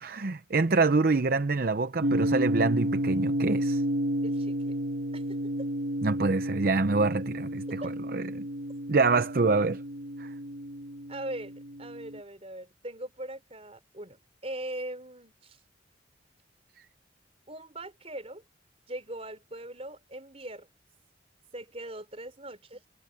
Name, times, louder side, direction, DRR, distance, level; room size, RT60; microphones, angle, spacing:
voice 1, 0.0-3.8 6.0-7.8 8.1-8.4 8.9-9.8 10.2-10.3, right 3 dB, 50° right, 0.7 m, -26 dB
sound 1, 2.0-12.2, equal, 65° right, 2.9 m, -31 dB
voice 2, 4.2-4.8 5.1-5.7 7.8-7.9 11.1-15.6 17.5-18.4 18.9-20.7 21.5-22.8, right 1 dB, 30° right, 4.5 m, -41 dB
head